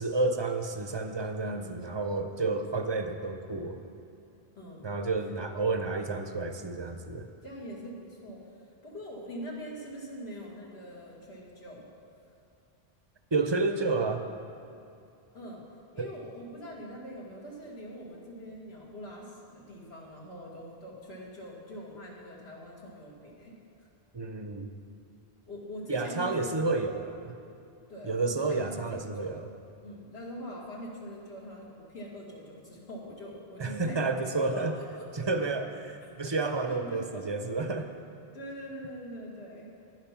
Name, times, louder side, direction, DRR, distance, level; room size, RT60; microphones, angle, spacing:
voice 1, 0.0-3.8 4.8-7.3 13.3-14.3 16.0-16.1 24.1-24.7 25.9-27.4 28.0-29.5 33.6-34.7 35.1-37.9, right 3 dB, 30° right, 7 dB, 0.6 m, -30 dB
voice 2, 1.4-1.8 4.6-4.9 7.4-8.4 8.8-11.9 15.3-15.6 15.9-23.9 25.5-26.8 27.9-29.4 29.8-34.0 34.4-35.1 36.2-37.3 38.3-39.7, equal, 75° left, -3 dB, 2.2 m, -43 dB
10.5 x 10.5 x 5.9 m, 2.7 s
omnidirectional pair, 1.1 m